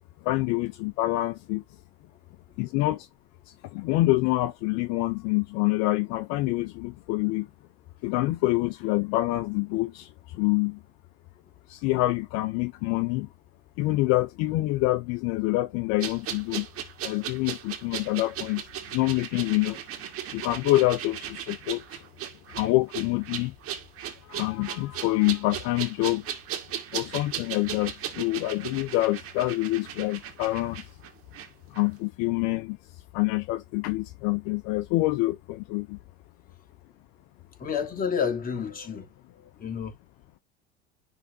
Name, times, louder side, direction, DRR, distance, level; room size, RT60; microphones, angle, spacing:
voice 1, 0.3-1.6 2.6-3.1 3.7-7.5 8.0-10.1 10.3-10.8 11.7-13.3 13.8-16.7 17.0-18.6 18.9-19.8 20.3-21.8 22.6-23.5 24.3-26.2 26.9-30.8 31.8-32.8 33.1-36.0, left 19 dB, 60° left, 0.7 m, -26 dB
sound 1, 16.0-31.5 31.7-31.9, right 10 dB, 50° right, 1.9 m, -37 dB
voice 2, 37.6-39.0 39.6-39.9, left 7 dB, 30° left, 2.9 m, -29 dB
10.5 x 3.5 x 2.7 m
hypercardioid pair, 90°, 30 cm